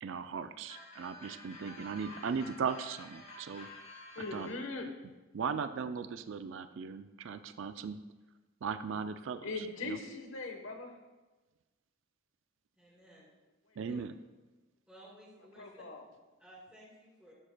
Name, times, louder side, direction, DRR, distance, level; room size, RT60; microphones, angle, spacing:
voice 1, 0.0-3.7 4.3-4.5 5.3-8.0 8.6-9.5 9.8-10.0 13.8-14.1, right 6 dB, 65° right, 11 dB, 0.4 m, -38 dB
sound 1, 0.7-4.6, left 2 dB, 35° left, 1.7 m, -50 dB
voice 2, 4.1-4.9 9.4-10.9 13.9-14.0 15.6-16.0, left 3 dB, 80° left, 4 dB, 1.1 m, -40 dB
voice 3, 12.8-13.3 13.9-14.0 14.9-15.8 16.4-17.3, right 1 dB, 5° right, -6 dB, 2.6 m, -56 dB
11.0 x 7.5 x 2.2 m, 1.2 s
head